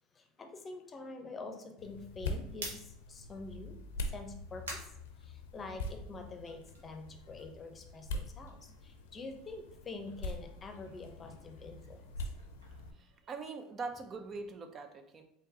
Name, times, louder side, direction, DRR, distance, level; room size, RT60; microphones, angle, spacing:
voice 1, 0.2-3.8 4.1-4.8 5.2-12.0, left 3 dB, 30° left, 4 dB, 0.7 m, -46 dB
sound 1, 1.8-12.9, left 2 dB, 80° left, 0.5 m, -44 dB
sound 2, 2.5-5.9 6.3-9.3 9.5-13.7, right 1 dB, 90° right, 1.1 m, -51 dB
voice 2, 13.0-15.2, right 4 dB, 35° right, 6 dB, 0.5 m, -42 dB
3.7 x 3.6 x 2.8 m, 0.79 s
hypercardioid pair, 85°, 0 cm